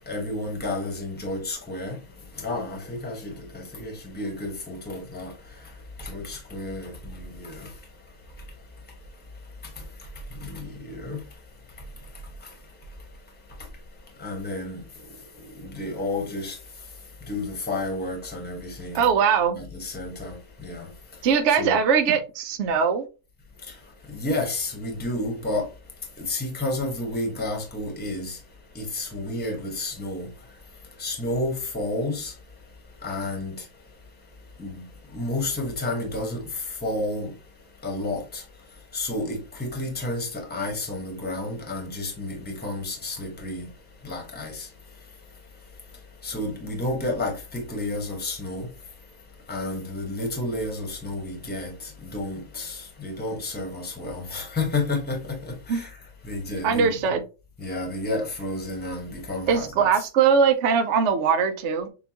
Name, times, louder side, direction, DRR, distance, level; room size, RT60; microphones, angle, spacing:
voice 1, 0.1-2.0 2.4-5.3 6.0-7.6 10.4-11.2 14.2-14.8 15.6-16.5 17.3-19.0 19.6-20.3 20.6-20.9 21.6-21.8 24.1-25.7 26.3-28.4 28.7-30.3 31.0-32.3 33.0-33.5 34.6-34.8 35.1-36.4 36.8-37.3 37.8-38.4 38.9-43.7 44.0-44.7 46.2-48.7 49.5-51.7 52.0-55.2 55.7-55.9 56.2-57.0 57.6-59.9, left 2 dB, 5° left, 1.0 m, -31 dB
voice 2, 18.9-19.6 21.2-23.0 55.7-55.8 56.6-57.2 59.5-61.9, right 6 dB, 65° right, 0.7 m, -21 dB
6.7 x 2.3 x 2.9 m
omnidirectional pair, 1.7 m